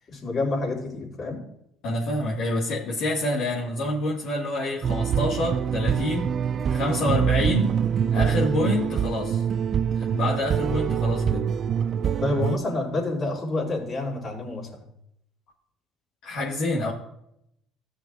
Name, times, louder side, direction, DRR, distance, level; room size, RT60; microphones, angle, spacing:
voice 1, 0.1-1.4 12.2-14.8, left 2 dB, 40° left, -2 dB, 3.8 m, -28 dB
voice 2, 1.8-6.3 6.7-7.8 8.1-9.4 10.1-11.5 16.2-16.9, left 1 dB, 65° left, -5 dB, 1.9 m, -27 dB
sound 1, 4.8-12.6, right 8 dB, 50° right, 0.3 m, -25 dB
16.5 x 6.2 x 2.6 m, 0.78 s
hypercardioid pair, 60°, 0 cm